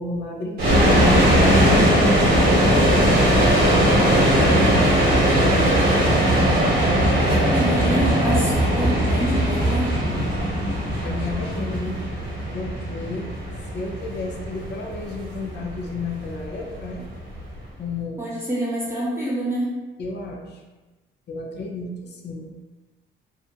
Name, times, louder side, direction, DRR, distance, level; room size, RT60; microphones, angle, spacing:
voice 1, 0.0-1.3 1.8-5.7 7.2-7.5 10.1-10.3 11.0-12.0 12.5-13.3 13.7-17.0 17.8-18.2 20.0-20.6 21.3-22.5, left 2 dB, 60° left, 0 dB, 0.6 m, -32 dB
sound 1, 0.6-17.6, equal, 50° right, 0.9 m, -19 dB
voice 2, 7.2-9.9 18.2-19.6, right 1 dB, 10° right, -7 dB, 0.7 m, -26 dB
2.5 x 2.1 x 2.7 m, 1.2 s
cardioid pair, 90°, 20 cm